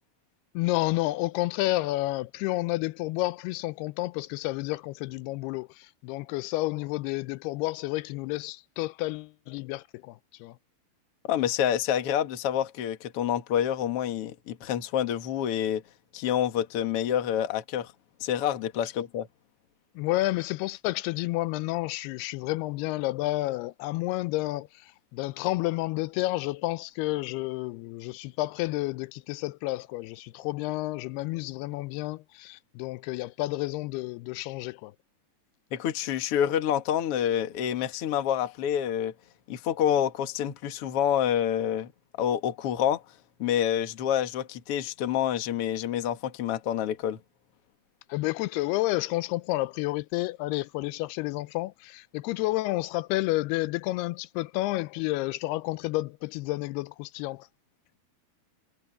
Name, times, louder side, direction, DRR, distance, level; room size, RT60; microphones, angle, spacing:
voice 1, 0.5-10.6 20.0-34.9 48.1-57.5, left 19 dB, 85° left, 2.6 m, -30 dB
voice 2, 11.3-15.8 16.1-17.9 18.2-19.3 35.7-39.1 39.5-41.9 42.2-43.0 43.4-47.2, left 10 dB, 50° left, 1.8 m, -27 dB
omnidirectional pair, 4.5 m